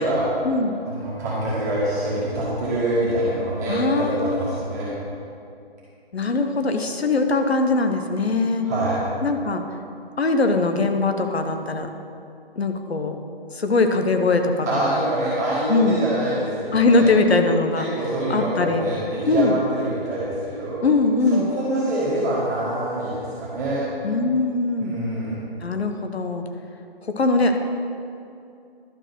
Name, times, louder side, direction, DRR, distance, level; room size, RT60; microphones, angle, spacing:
voice 1, 0.0-0.5 0.9-4.9 8.6-9.0 14.6-17.1 17.8-20.8 21.3-23.8 24.8-25.4, right 1 dB, 15° right, -10 dB, 1.7 m, -25 dB
voice 2, 3.7-4.6 6.1-8.7 9.2-9.6 10.2-11.9 12.6-13.2 13.5-14.9 15.7-16.0 16.7-17.9 18.3-18.8 19.3-19.6 20.8-21.5 24.0-25.0 25.6-26.5 27.0-27.6, left 3 dB, 90° left, 6 dB, 1.0 m, -21 dB
11.5 x 4.7 x 5.9 m, 2.6 s
hypercardioid pair, 170°, 31 cm